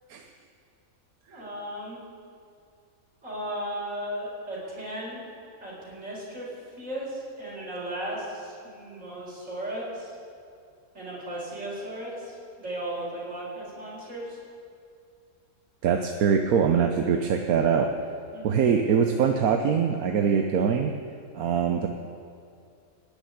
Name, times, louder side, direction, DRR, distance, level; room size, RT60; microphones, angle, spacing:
voice 1, 1.3-2.0 3.2-5.2 5.6-10.1 10.9-14.4 18.3-18.6, right 1 dB, 60° right, -6 dB, 4.9 m, -36 dB
voice 2, 15.8-17.9 18.4-20.9 21.3-21.9, right 7 dB, 80° right, 4 dB, 1.3 m, -23 dB
18.0 x 7.0 x 9.7 m, 2.3 s
omnidirectional pair, 1.5 m